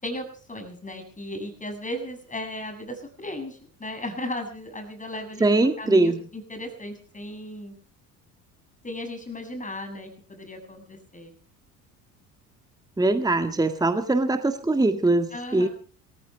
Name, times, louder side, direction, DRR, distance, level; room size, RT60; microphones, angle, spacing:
voice 1, 0.0-5.5 5.8-7.8 8.8-11.3 15.3-15.7, left 1 dB, 15° left, 7 dB, 7.9 m, -36 dB
voice 2, 5.4-6.2 13.0-15.7, right 2 dB, 10° right, 8 dB, 1.8 m, -22 dB
27.5 x 15.0 x 3.4 m, 0.41 s
figure-of-eight pair, 60°, 47 cm